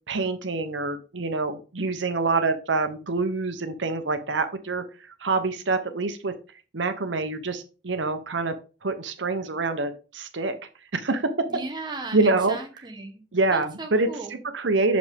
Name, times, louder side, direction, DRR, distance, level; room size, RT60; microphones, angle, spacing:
voice 1, 0.1-4.8 5.2-6.3 6.7-8.5 8.8-10.6 10.9-11.3 12.1-12.6 13.3-15.0, right 3 dB, 80° right, 9 dB, 0.9 m, -26 dB
voice 2, 11.5-13.2 13.5-14.3, right 3 dB, 25° right, 4 dB, 1.0 m, -36 dB
6.2 x 5.2 x 3.4 m, 0.35 s
head